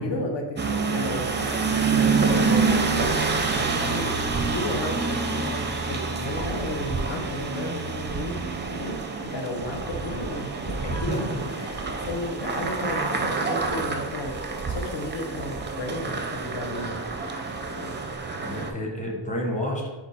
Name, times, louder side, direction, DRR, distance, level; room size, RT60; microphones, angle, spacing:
voice 1, 0.0-14.4 14.7-17.4 17.7-18.0, left 1 dB, 65° left, 3 dB, 0.8 m, -34 dB
sound 1, 0.6-18.7, right 4 dB, 25° right, 0.4 m, -27 dB
voice 2, 11.1-11.4 18.4-19.9, equal, 15° left, -1 dB, 1.0 m, -29 dB
4.5 x 2.3 x 4.1 m, 1.2 s
wide cardioid pair, 75°, 47 cm